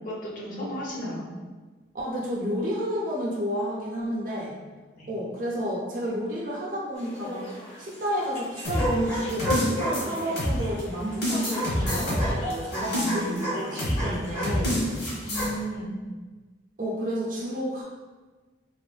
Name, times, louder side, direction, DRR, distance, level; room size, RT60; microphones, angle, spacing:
voice 1, 0.1-1.3 5.0-5.1 15.2-15.9, equal, 45° left, -4 dB, 0.6 m, -34 dB
voice 2, 1.9-4.5 5.1-7.5 7.8-14.8 16.8-17.8, equal, 45° right, -5 dB, 0.5 m, -31 dB
sound 1, 7.0-15.6, equal, 90° left, 1.1 m, -33 dB
sound 2, 8.6-10.8 11.2-13.4 13.8-14.0 14.4-15.5, equal, 60° left, 0.9 m, -27 dB
3.1 x 2.1 x 2.4 m, 1.3 s
head